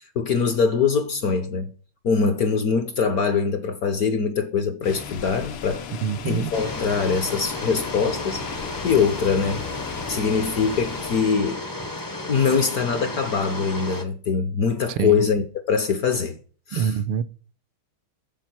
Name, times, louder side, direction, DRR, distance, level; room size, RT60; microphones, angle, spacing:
voice 1, 0.2-1.7 2.0-5.8 6.3-8.4 8.8-9.7 10.1-11.6 12.3-16.4 16.7-17.0, left 5 dB, 60° left, 1.0 m, -23 dB
sound 1, 4.8-11.2, left 7 dB, 75° left, 1.7 m, -36 dB
voice 2, 6.0-6.5 15.0-15.2 16.7-17.2, right 8 dB, 85° right, 1.5 m, -25 dB
sound 2, 6.5-14.0, left 2 dB, 25° left, 0.4 m, -33 dB
7.4 x 7.4 x 5.8 m
omnidirectional pair, 2.3 m